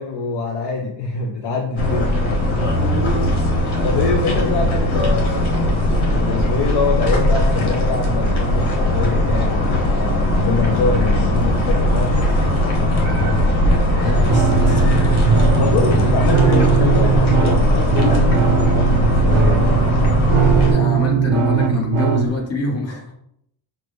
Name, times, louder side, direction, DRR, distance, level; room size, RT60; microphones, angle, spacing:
voice 1, 0.0-2.2 2.5-2.7 3.8-5.6 6.1-9.9 10.4-12.3 15.6-19.7, left 4 dB, 60° left, 1 dB, 0.5 m, -24 dB
sound 1, 1.8-20.7, left 1 dB, 85° left, 1.1 m, -18 dB
voice 2, 2.8-3.3 12.8-13.5 14.0-15.1 16.4-16.8 20.7-23.1, left 2 dB, 30° left, 0 dB, 0.9 m, -26 dB
sound 2, 14.3-22.3, right 6 dB, 75° right, 0.7 m, -19 dB
5.8 x 2.0 x 3.3 m, 0.75 s
wide cardioid pair, 150°, 48 cm